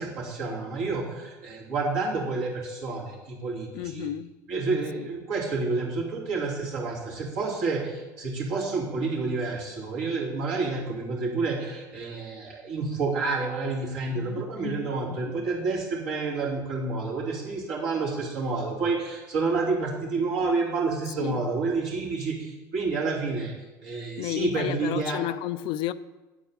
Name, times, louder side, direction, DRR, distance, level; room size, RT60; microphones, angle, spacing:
voice 1, 0.0-4.1 4.5-23.5 23.8-25.2, right 3 dB, 70° right, 3.0 m, -29 dB
voice 2, 3.7-4.3 5.0-5.1 14.1-15.5 21.2-21.4 24.2-25.9, left 13 dB, 60° left, 0.4 m, -32 dB
8.9 x 4.7 x 7.5 m
hypercardioid pair, 75°, 10 cm